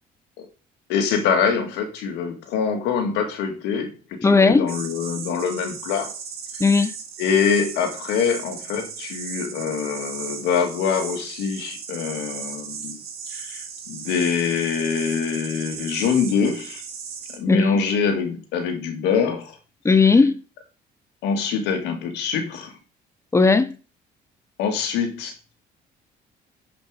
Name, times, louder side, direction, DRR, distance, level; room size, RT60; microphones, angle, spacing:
voice 1, 0.9-6.1 7.2-13.0 13.3-16.8 17.3-19.6 21.2-22.7 24.6-25.5, left 6 dB, 90° left, 2.0 m, -24 dB
voice 2, 4.2-4.7 6.6-6.9 17.5-17.8 19.8-20.4 23.3-23.7, left 4 dB, 15° left, 0.9 m, -17 dB
sound 1, 4.7-17.4, right 6 dB, 65° right, 2.6 m, -36 dB
9.1 x 5.3 x 5.0 m
cardioid pair, 110°, 17 cm